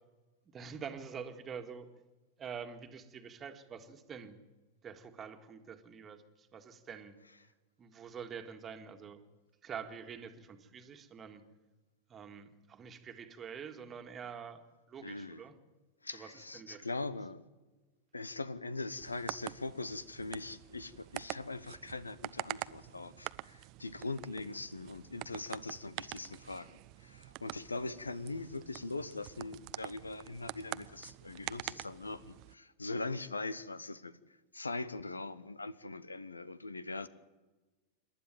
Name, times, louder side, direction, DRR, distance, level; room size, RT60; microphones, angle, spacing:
voice 1, 0.5-1.9 2.4-4.4 4.8-7.1 7.8-9.2 9.6-11.4 12.1-14.6 14.9-15.5 16.1-16.9, right 7 dB, 25° right, 7 dB, 1.8 m, -46 dB
voice 2, 15.0-15.4 16.0-17.4 18.1-34.1 34.5-37.1, left 3 dB, 80° left, 18 dB, 0.9 m, -41 dB
sound 1, 19.0-32.5, right 20 dB, 40° right, 0.6 m, -46 dB
27.0 x 12.0 x 9.1 m, 1.2 s
figure-of-eight pair, 90°, 0 cm